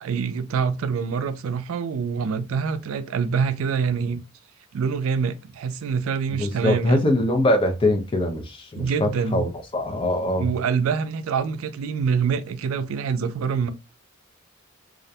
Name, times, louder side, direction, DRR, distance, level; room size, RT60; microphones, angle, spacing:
voice 1, 0.0-4.2 4.7-7.1 8.8-9.5 10.4-13.7, right 6 dB, 80° right, 0.4 m, -25 dB
voice 2, 6.3-10.5, left 1 dB, 25° left, 0.5 m, -23 dB
2.4 x 2.1 x 2.7 m
head